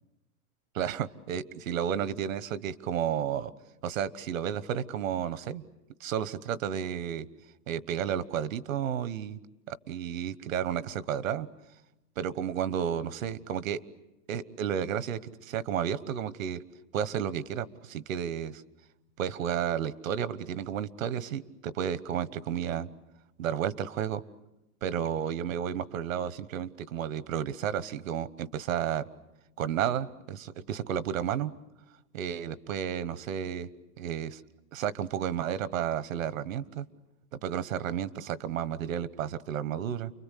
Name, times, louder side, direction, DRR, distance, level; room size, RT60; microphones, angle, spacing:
voice 1, 0.7-3.5 3.8-5.6 6.0-7.3 7.7-9.4 9.7-11.5 12.2-13.8 14.3-16.6 16.9-18.6 19.2-22.9 23.4-24.2 24.8-29.0 29.6-31.5 32.1-33.7 34.0-34.4 34.7-36.9 37.3-40.1, right 9 dB, 65° right, 17 dB, 1.2 m, -32 dB
29.5 x 23.0 x 8.3 m, 0.96 s
supercardioid pair, 165°, 44 cm